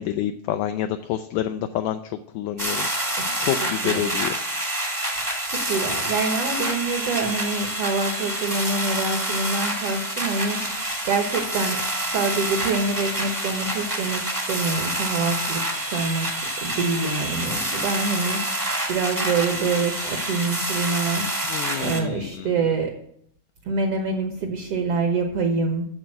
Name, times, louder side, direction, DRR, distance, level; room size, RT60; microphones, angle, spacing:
voice 1, 0.0-4.3 21.5-22.5, left 11 dB, 80° left, 8 dB, 1.9 m, -28 dB
sound 1, 2.6-22.0, right 1 dB, 15° right, 0.7 m, -27 dB
voice 2, 5.2-11.8 12.1-14.2 14.5-15.6 15.9-16.3 16.6-21.2 21.8-22.9 23.6-25.9, right 4 dB, 65° right, 4 dB, 1.5 m, -26 dB
8.9 x 6.8 x 7.6 m, 0.70 s
omnidirectional pair, 4.2 m